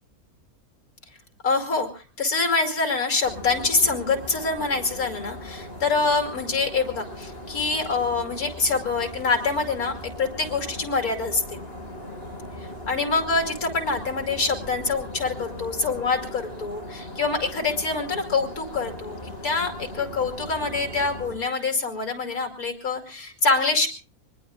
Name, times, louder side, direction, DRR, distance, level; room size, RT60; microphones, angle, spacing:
voice 1, 1.4-11.6 12.6-23.9, left 4 dB, 85° left, 4 dB, 3.2 m, -25 dB
sound 1, 3.2-21.4, left 1 dB, 40° left, 4.8 m, -39 dB
25.5 x 20.5 x 2.4 m, 0.36 s
omnidirectional pair, 1.5 m